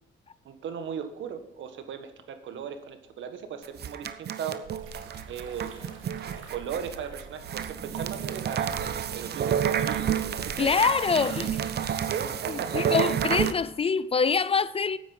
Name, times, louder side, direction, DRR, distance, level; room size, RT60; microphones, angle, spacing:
voice 1, 0.4-4.6 5.3-5.7 6.5-10.1 10.6-10.7 11.8-12.9, right 7 dB, 70° right, 1.5 m, -37 dB
sound 1, 3.6-13.5, right 9 dB, 55° right, 0.9 m, -30 dB
sound 2, 4.6-11.9, right 4 dB, 90° right, 1.8 m, -45 dB
voice 2, 10.6-11.7 12.5-15.0, left 5 dB, 30° left, 0.4 m, -25 dB
9.0 x 8.8 x 5.5 m
cardioid pair, 90°, 20 cm